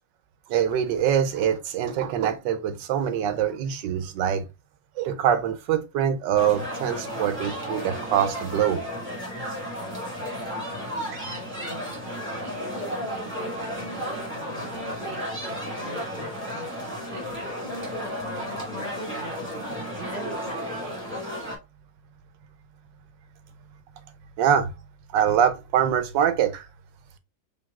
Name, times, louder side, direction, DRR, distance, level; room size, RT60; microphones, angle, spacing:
voice 1, 0.5-4.5 5.0-8.8 11.1-11.2 24.4-24.7 25.1-26.7, right 9 dB, 80° right, 1.3 m, -24 dB
sound 1, 6.4-21.6, equal, 5° right, 1.3 m, -33 dB
voice 2, 11.1-16.8 17.1-21.0, left 1 dB, 80° left, 0.3 m, -41 dB
5.2 x 3.1 x 2.3 m
omnidirectional pair, 2.0 m